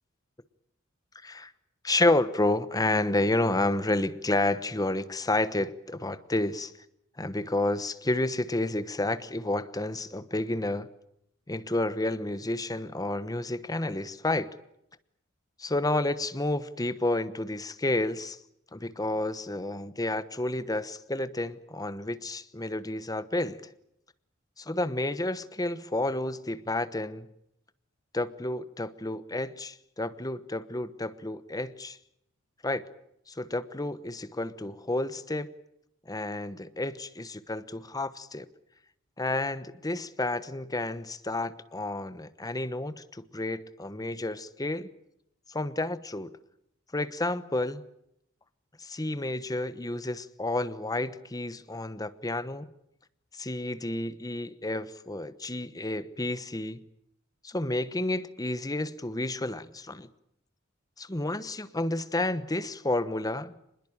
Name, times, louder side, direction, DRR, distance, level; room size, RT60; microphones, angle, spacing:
voice 1, 1.8-6.7 7.2-10.9 11.5-14.5 15.6-18.4 18.7-23.7 24.6-27.3 28.1-32.0 32.6-32.8 33.3-35.5 36.1-38.5 39.2-44.9 45.5-46.3 46.9-47.8 48.8-52.7 53.3-56.8 57.4-60.1 61.0-63.5, left 2 dB, 20° left, 13 dB, 1.1 m, -30 dB
25.5 x 21.0 x 8.8 m, 0.78 s
head